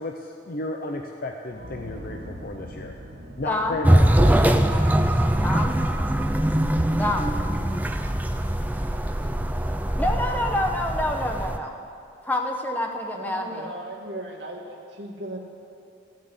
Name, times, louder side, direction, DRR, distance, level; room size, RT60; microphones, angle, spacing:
voice 1, 0.0-2.9 3.4-4.9, left 2 dB, 45° left, 2 dB, 0.7 m, -33 dB
sound 1, 1.5-11.1, equal, 80° right, 1.6 m, -44 dB
voice 2, 3.4-3.8 5.4-5.8 7.0-7.3 10.0-11.7 12.2-13.7, left 1 dB, 10° left, 2 dB, 0.9 m, -27 dB
sound 2, 3.8-11.6, right 1 dB, 10° right, 0.5 m, -22 dB
voice 3, 13.1-15.4, right 1 dB, 60° right, -1 dB, 2.0 m, -36 dB
15.5 x 7.4 x 8.1 m, 2.4 s
head